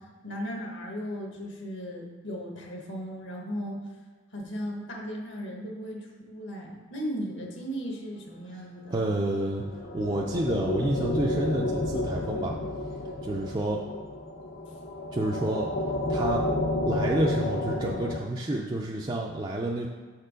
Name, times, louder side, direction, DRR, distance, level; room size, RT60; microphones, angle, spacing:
voice 1, 0.2-3.8 4.3-9.2 14.7-14.8, equal, 60° left, 0 dB, 1.2 m, -36 dB
voice 2, 8.9-9.6 9.9-12.6 13.2-13.8 15.1-15.7 16.1-16.5 16.9-19.9, right 1 dB, 25° right, -2 dB, 0.4 m, -29 dB
sound 1, 9.3-18.2, left 1 dB, 45° left, 0.6 m, -31 dB
6.5 x 4.5 x 5.0 m, 1.5 s
head